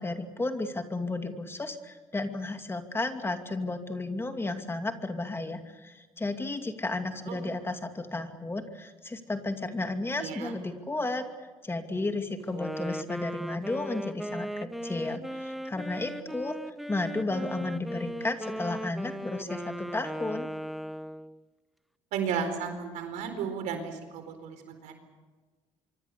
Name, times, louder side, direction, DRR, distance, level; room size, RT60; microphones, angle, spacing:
voice 1, 0.0-16.6 16.9-20.5, left 2 dB, 20° left, 6 dB, 2.5 m, -33 dB
voice 2, 10.2-10.5 22.1-24.9, right 6 dB, 80° right, 7 dB, 4.3 m, -34 dB
Wind instrument woodwind instrument, 12.4-21.4, equal, ahead, 0.9 m, -38 dB
25.0 x 24.5 x 7.0 m, 1.3 s
supercardioid pair, 80°, 13 cm